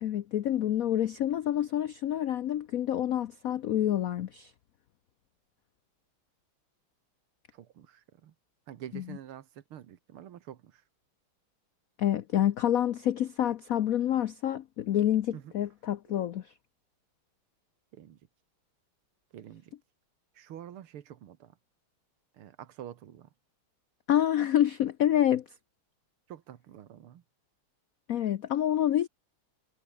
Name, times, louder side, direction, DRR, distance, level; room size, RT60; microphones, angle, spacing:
voice 1, 0.0-4.5 12.0-16.4 24.1-25.4 28.1-29.1, left 11 dB, 85° left, 0.7 m, -27 dB
voice 2, 7.5-8.4 8.7-10.8 15.3-15.6 17.9-18.2 19.3-19.7 20.3-21.6 22.3-23.3 26.3-27.2, right 10 dB, 80° right, 2.1 m, -47 dB
omnidirectional pair, 2.3 m